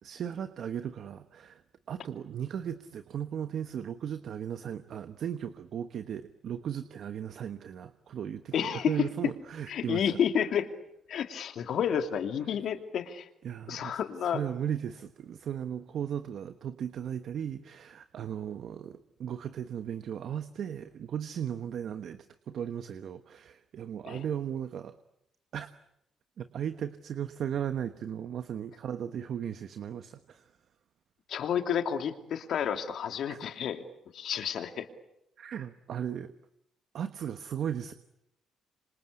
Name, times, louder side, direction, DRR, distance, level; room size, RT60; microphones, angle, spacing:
voice 1, 0.0-1.6 1.9-10.2 12.5-12.6 13.4-25.0 25.5-25.7 26.4-30.5 33.3-33.4 35.4-36.3 36.9-37.9, right 9 dB, 65° right, 10 dB, 1.2 m, -36 dB
voice 2, 8.5-8.9 9.7-10.7 11.1-13.3 13.7-14.4 24.1-24.2 31.3-33.8 34.1-34.9, left 8 dB, 70° left, 7 dB, 2.6 m, -30 dB
27.0 x 26.0 x 8.4 m, 0.81 s
cardioid pair, 90°, 0 cm